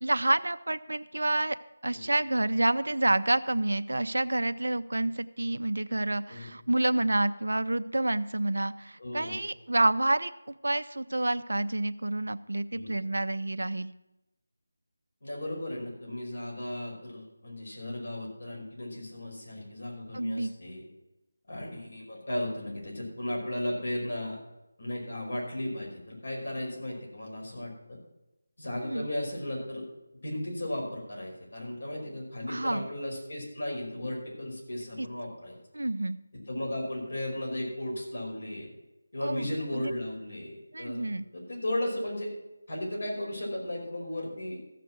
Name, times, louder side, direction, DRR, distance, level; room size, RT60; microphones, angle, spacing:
voice 1, 0.0-1.6 1.8-13.9 20.1-20.5 28.8-29.1 32.5-32.9 35.0-35.1 35.7-36.2 39.2-39.5 39.7-39.8 40.7-41.2, right 2 dB, 85° right, 12 dB, 0.6 m, -28 dB
voice 2, 9.0-9.4 12.7-13.0 15.2-20.8 21.5-24.4 24.8-28.0 28.6-29.8 30.2-35.6 36.3-38.7 39.1-41.1 41.3-42.3 42.7-44.6, left 1 dB, 65° left, -1 dB, 5.2 m, -35 dB
14.5 x 6.8 x 6.1 m, 0.95 s
figure-of-eight pair, 170°, 0 cm